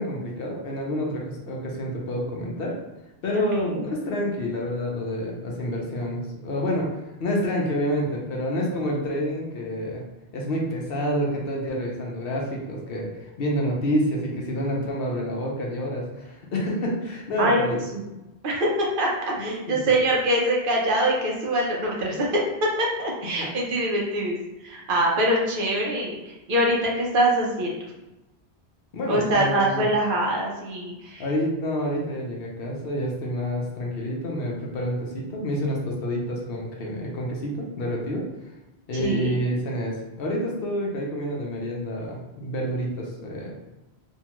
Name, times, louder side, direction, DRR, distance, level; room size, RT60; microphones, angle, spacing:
voice 1, 0.0-2.8 3.2-6.9 7.2-10.0 10.3-17.8 19.4-19.9 28.9-29.8 31.2-38.2 38.9-43.5, equal, 65° left, -1 dB, 0.8 m, -28 dB
voice 2, 3.3-3.8 17.4-17.6 17.9-18.1 18.4-27.9 29.1-31.3 38.9-39.3, right 1 dB, 60° right, -2 dB, 0.7 m, -24 dB
2.7 x 2.2 x 2.9 m, 0.99 s
omnidirectional pair, 1.1 m